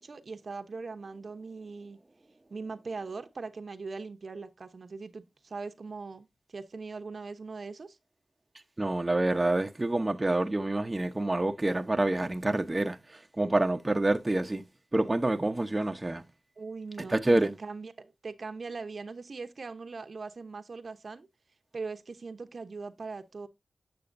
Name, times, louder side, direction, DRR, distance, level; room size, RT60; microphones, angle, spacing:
voice 1, 0.0-2.0 2.5-8.0 16.6-21.3 21.7-23.5, right 4 dB, 65° right, 0.8 m, -40 dB
voice 2, 8.8-13.0 13.4-14.6 14.9-16.2 17.1-17.5, right 2 dB, 25° right, 0.8 m, -27 dB
8.2 x 6.9 x 2.6 m
cardioid pair, 50°, 0 cm